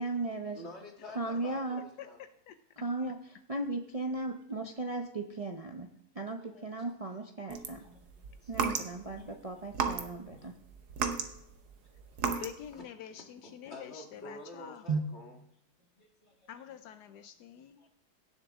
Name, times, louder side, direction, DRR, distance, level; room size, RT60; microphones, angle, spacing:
voice 1, 0.0-0.6 1.2-1.8 2.8-3.2 3.5-5.9 6.2-7.8 8.5-10.5 14.9-15.0, right 3 dB, 40° right, 3 dB, 0.4 m, -36 dB
voice 2, 0.5-2.2 5.2-5.3 6.4-6.7 7.8-8.7 9.2-9.4 10.3-10.5 12.7-12.9 13.4-15.4 16.0-16.5 17.5-17.9, left 2 dB, 40° left, 1 dB, 2.2 m, -50 dB
voice 3, 2.0-2.5 12.2-14.9 16.5-17.8, left 9 dB, 80° left, 9 dB, 1.2 m, -47 dB
sound 1, 7.5-9.2 9.7-10.4 10.7-12.7, right 6 dB, 75° right, 1.5 m, -34 dB
17.0 x 6.8 x 3.6 m, 0.79 s
omnidirectional pair, 1.8 m